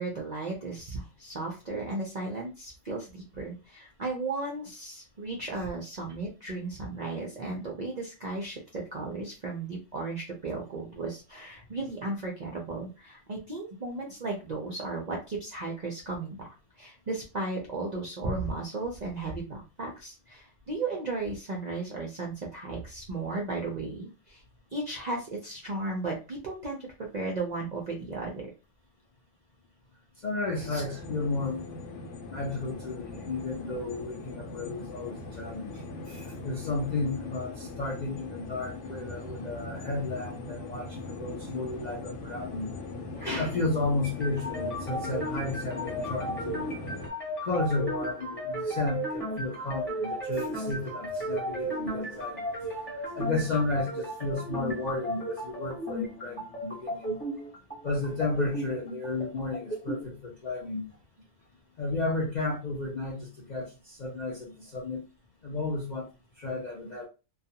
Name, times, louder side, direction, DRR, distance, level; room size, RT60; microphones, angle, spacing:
voice 1, 0.0-16.5 16.8-24.4 24.7-26.9 27.1-28.5 30.7-30.8, right 3 dB, 60° right, 0.4 m, -35 dB
voice 2, 30.2-31.6 32.3-42.7 43.1-46.6 47.4-57.2 57.8-60.8 61.8-65.0 65.4-66.1 66.4-67.1, left 3 dB, 60° left, 0.4 m, -33 dB
sound 1, 30.5-47.1, left 2 dB, 75° left, 0.9 m, -40 dB
sound 2, 44.0-60.0, right 1 dB, 10° left, 0.9 m, -35 dB
2.3 x 2.3 x 2.7 m
omnidirectional pair, 1.4 m